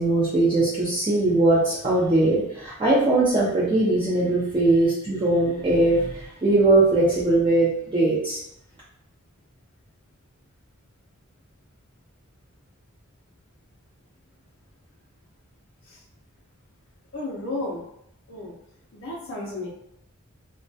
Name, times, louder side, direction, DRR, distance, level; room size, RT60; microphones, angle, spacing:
voice 1, 0.0-8.4, right 2 dB, 20° right, -8 dB, 0.4 m, -20 dB
voice 2, 17.1-17.8 18.3-18.5 18.9-19.7, left 2 dB, 60° left, -5 dB, 0.5 m, -33 dB
2.2 x 2.2 x 2.6 m, 0.75 s
head